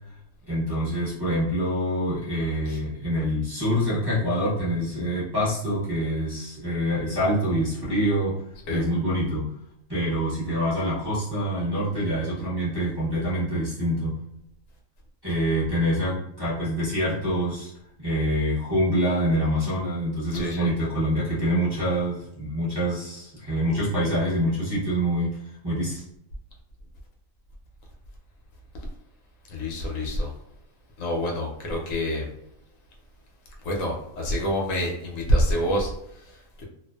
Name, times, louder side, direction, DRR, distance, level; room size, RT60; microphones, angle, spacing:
voice 1, 0.5-8.4 8.7-9.4 9.9-14.1 15.2-17.7 18.0-26.0, equal, 25° right, -10 dB, 0.6 m, -26 dB
voice 2, 20.3-20.7 29.5-30.3 31.0-32.3 33.6-36.6, equal, 80° left, 0 dB, 1.0 m, -27 dB
2.5 x 2.2 x 2.2 m, 0.80 s
omnidirectional pair, 1.4 m